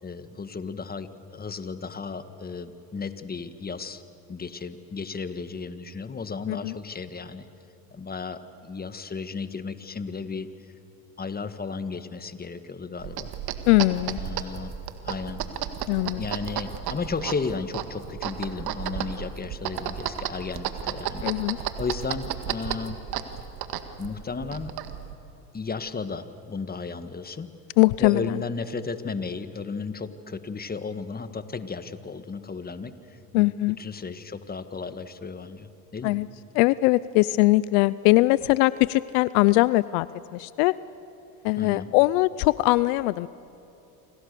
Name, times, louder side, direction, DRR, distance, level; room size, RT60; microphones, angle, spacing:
voice 1, 0.0-4.0 4.3-7.5 7.9-10.5 11.2-13.3 14.1-14.7 15.0-15.4 16.1-21.3 21.6-23.0 24.0-24.7 25.5-27.5 28.0-33.5 33.8-36.2 41.6-41.9, left 4 dB, 20° left, 10 dB, 1.7 m, -34 dB
sound 1, 13.0-25.1, right 9 dB, 55° right, 2.0 m, -33 dB
voice 2, 13.7-14.2 15.9-16.2 21.2-21.6 27.8-28.2 33.3-33.8 36.0-36.3 36.5-40.1 40.3-40.7 41.4-43.3, left 20 dB, 70° left, 18 dB, 0.7 m, -21 dB
29.5 x 26.5 x 6.9 m, 3.0 s
supercardioid pair, 90°, 45 cm